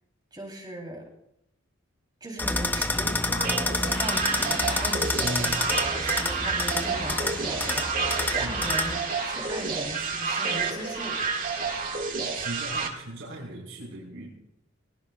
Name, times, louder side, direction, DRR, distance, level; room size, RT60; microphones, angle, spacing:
voice 1, 0.3-1.0 2.2-9.0 9.2-11.2, right 1 dB, 20° right, 1 dB, 3.3 m, -38 dB
sound 1, 2.4-9.0, left 2 dB, 10° left, 0.7 m, -28 dB
sound 2, 3.3-12.9, right 5 dB, 45° right, 1.9 m, -29 dB
sound 3, 3.8-11.4, left 4 dB, 70° left, 2.8 m, -44 dB
voice 2, 5.2-5.7 8.4-8.5 12.3-14.3, right 1 dB, 80° right, -3 dB, 4.9 m, -37 dB
20.0 x 19.0 x 2.4 m, 0.80 s
head